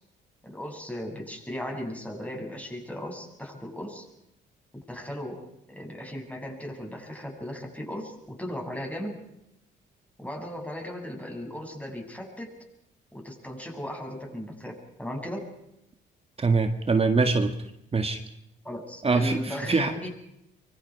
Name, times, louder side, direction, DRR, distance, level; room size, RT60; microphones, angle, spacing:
voice 1, 0.4-4.1 4.7-5.4 5.7-9.2 10.2-12.5 13.1-15.5 18.6-20.1, equal, 5° left, 1 dB, 7.3 m, -37 dB
voice 2, 16.4-17.5 17.9-18.2 19.0-19.9, right 4 dB, 30° right, 7 dB, 1.9 m, -23 dB
25.0 x 24.0 x 4.8 m, 0.79 s
cardioid pair, 90°, 20 cm